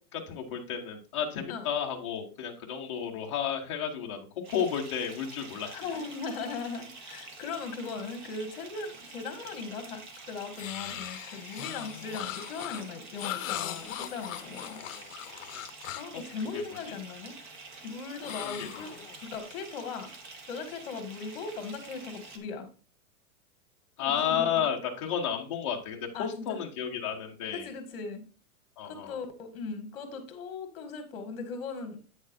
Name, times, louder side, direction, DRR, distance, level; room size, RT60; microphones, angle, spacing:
voice 1, 0.1-4.2 4.5-5.7 16.1-16.2 16.5-16.6 18.4-18.7 24.0-27.7 28.8-29.1, left 8 dB, 20° left, 1 dB, 0.7 m, -32 dB
Bathtub (filling or washing) / Fill (with liquid), 4.4-22.4, right 3 dB, 35° right, 1.0 m, -48 dB
voice 2, 5.7-10.0 10.3-14.8 16.0-17.3 17.8-18.9 19.3-20.1 20.5-22.7 24.0-24.6 26.1-26.6 27.5-28.2 28.8-32.0, left 4 dB, 40° left, 5 dB, 1.7 m, -38 dB
sound 1, 10.5-16.2 18.2-19.4, left 12 dB, 60° left, 0.7 m, -39 dB
8.8 x 6.4 x 2.6 m, 0.36 s
supercardioid pair, 175°, 44 cm